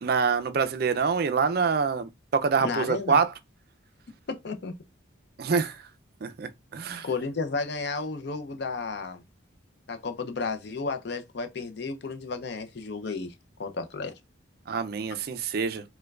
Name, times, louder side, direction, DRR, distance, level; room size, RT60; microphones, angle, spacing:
voice 1, 0.0-3.3 5.4-5.8 6.2-7.1 14.7-15.8, right 5 dB, 50° right, 0.4 m, -26 dB
voice 2, 2.6-3.2 4.3-4.8 7.0-9.2 9.9-13.3 13.6-14.1, left 4 dB, 55° left, 0.5 m, -32 dB
4.5 x 2.2 x 2.3 m
head